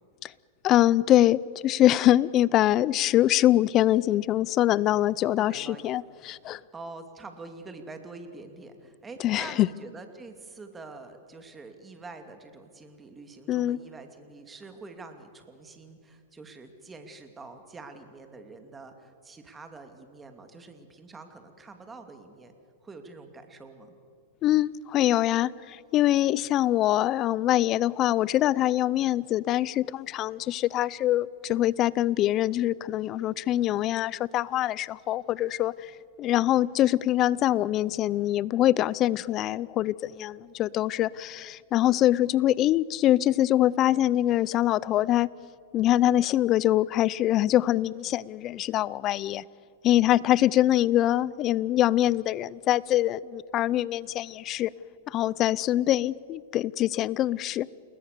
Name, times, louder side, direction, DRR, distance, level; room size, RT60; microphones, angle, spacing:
voice 1, 0.6-6.6 9.2-9.7 13.5-13.8 24.4-35.7 36.2-45.3 45.7-49.4 49.8-54.7 55.1-57.7, left 13 dB, 35° left, 22 dB, 0.6 m, -24 dB
voice 2, 5.3-5.9 6.7-22.5 22.8-23.9, right 3 dB, 15° right, 6 dB, 2.7 m, -45 dB
29.5 x 20.5 x 6.9 m, 2.3 s
hypercardioid pair, 130°, 0 cm